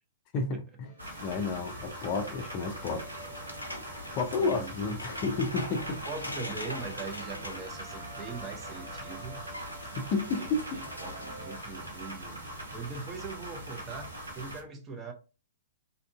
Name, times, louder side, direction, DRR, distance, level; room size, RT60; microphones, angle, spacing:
voice 1, 0.3-0.9 1.2-3.4 4.1-6.0 10.0-10.8, left 3 dB, 35° left, 0.5 m, -31 dB
sound 1, 0.8-11.6, right 2 dB, 40° right, 1.0 m, -51 dB
sound 2, 1.0-14.6, equal, 85° right, 0.8 m, -42 dB
sound 3, 2.7-8.6 8.9-9.0 9.2-11.3, left 1 dB, 85° left, 0.5 m, -43 dB
voice 2, 4.4-4.7 6.1-9.5 10.4-15.1, right 4 dB, 20° right, 0.6 m, -41 dB
2.6 x 2.4 x 2.3 m
figure-of-eight pair, 110°, 0 cm